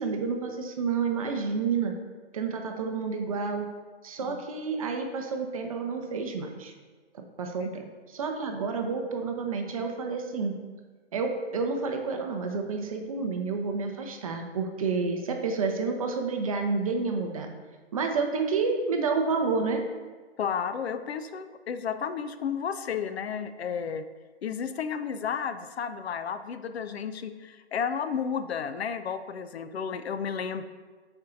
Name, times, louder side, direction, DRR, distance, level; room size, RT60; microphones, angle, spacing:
voice 1, 0.0-1.9 2.3-3.6 4.0-6.7 7.4-10.6 11.1-17.5 17.9-19.8, right 4 dB, 35° right, 4 dB, 0.5 m, -29 dB
voice 2, 20.4-24.0 24.4-30.6, left 7 dB, 65° left, 10 dB, 0.5 m, -32 dB
9.4 x 4.4 x 2.5 m, 1.4 s
hypercardioid pair, 140°, 34 cm